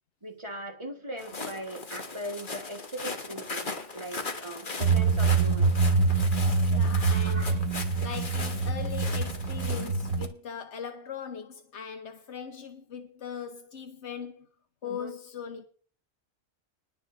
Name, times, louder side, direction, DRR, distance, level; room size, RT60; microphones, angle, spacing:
voice 1, 0.2-6.0 7.1-7.9 14.8-15.1, right 1 dB, 25° right, 1.8 m, -40 dB
Walk footsteps, 1.2-10.3, left 3 dB, 45° left, 1.5 m, -39 dB
sound 1, 4.8-10.3, right 4 dB, 80° right, 1.2 m, -25 dB
voice 2, 6.6-7.6 8.0-14.5 14.8-15.7, left 7 dB, 85° left, 1.3 m, -40 dB
20.0 x 7.3 x 4.0 m
omnidirectional pair, 1.1 m